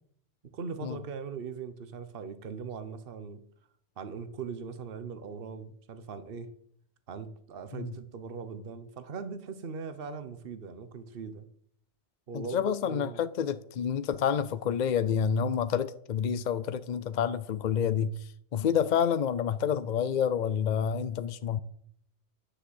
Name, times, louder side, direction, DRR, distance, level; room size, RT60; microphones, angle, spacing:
voice 1, 0.5-3.4 4.0-6.5 7.1-11.5 12.3-13.2, right 5 dB, 55° right, 1.1 m, -40 dB
voice 2, 12.3-21.6, left 8 dB, 55° left, 0.5 m, -28 dB
10.0 x 6.5 x 7.9 m
omnidirectional pair, 1.2 m